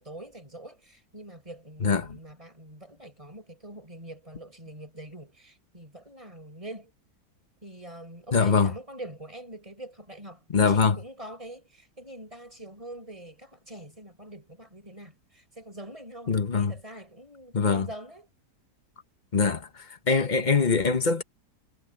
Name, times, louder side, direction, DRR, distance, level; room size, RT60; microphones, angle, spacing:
voice 1, 0.0-6.9 7.6-18.3, right 1 dB, 20° right, 5.5 m, -44 dB
voice 2, 8.3-8.7 10.5-11.0 16.3-16.7 17.5-17.9 19.3-19.7 20.1-21.2, left 5 dB, 30° left, 1.1 m, -22 dB
omnidirectional pair, 1.8 m